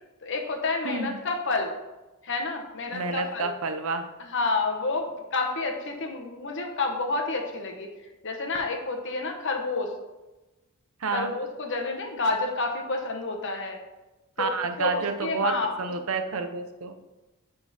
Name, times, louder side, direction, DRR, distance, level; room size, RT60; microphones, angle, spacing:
voice 1, 0.2-1.7 2.2-3.5 4.2-7.9 8.2-9.9 11.1-13.8 14.4-14.5 14.8-15.7, left 3 dB, 60° left, 4 dB, 1.0 m, -29 dB
voice 2, 2.9-4.0 11.0-11.3 14.4-16.9, right 4 dB, 75° right, 7 dB, 0.7 m, -29 dB
9.4 x 3.8 x 4.1 m, 1.1 s
head